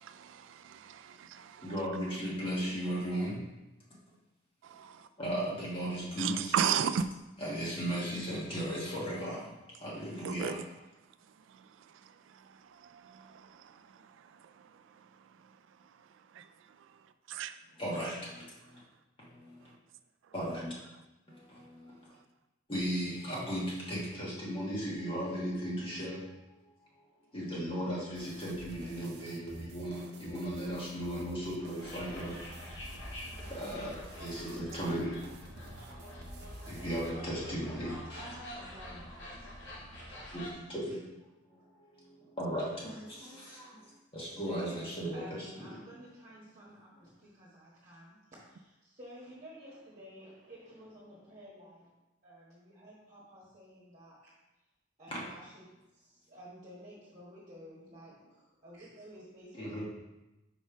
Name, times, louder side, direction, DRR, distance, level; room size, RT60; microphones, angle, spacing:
voice 1, 0.0-1.7 4.6-5.1 6.2-7.1 10.2-10.6 11.5-15.1 15.4-15.5 16.3-16.5 17.3-17.5, right 8 dB, 85° right, 0.3 m, -36 dB
voice 2, 1.6-3.4 5.2-6.3 7.4-9.5 9.8-10.6 17.8-18.8 19.2-19.7 20.3-20.7 21.3-22.1 22.7-26.2 27.3-32.4 33.0-33.1 33.5-35.5 35.9-38.2 39.5-39.6 40.3-41.0 41.5-41.6 41.9-43.8 44.1-45.2 55.1-55.2 59.5-59.9, equal, 30° left, 1.4 m, -36 dB
sound 1, 28.1-37.1, right 2 dB, 60° right, 0.7 m, -50 dB
sound 2, 31.8-40.5, equal, 75° left, 1.5 m, -46 dB
voice 3, 38.1-39.5 40.0-40.5 42.9-43.0 44.4-48.2 48.4-51.9 52.2-54.3 55.0-55.6 55.9-59.9, equal, 40° right, 1.3 m, -52 dB
5.1 x 4.1 x 4.9 m
head